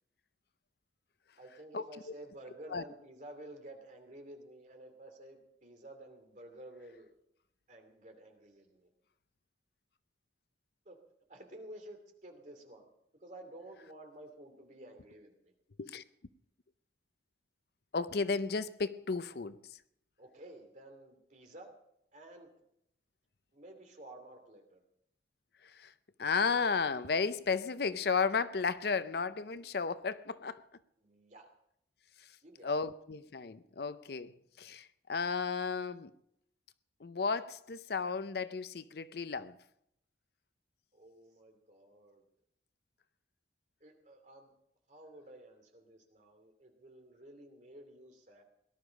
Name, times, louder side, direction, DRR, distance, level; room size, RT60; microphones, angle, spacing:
voice 1, 1.4-7.1 7.7-8.9 10.9-11.0 11.3-12.9 13.2-15.5 20.2-21.7 22.1-22.5 23.5-24.8 31.0-31.5 32.4-32.7 40.9-42.2 43.8-44.5 44.9-48.4, right 1 dB, 45° right, 2.7 m, -52 dB
voice 2, 17.9-19.6 25.6-25.9 26.2-30.6 32.6-34.3 34.6-36.1 37.0-39.6, left 5 dB, 60° left, 0.6 m, -33 dB
18.0 x 12.0 x 5.2 m
head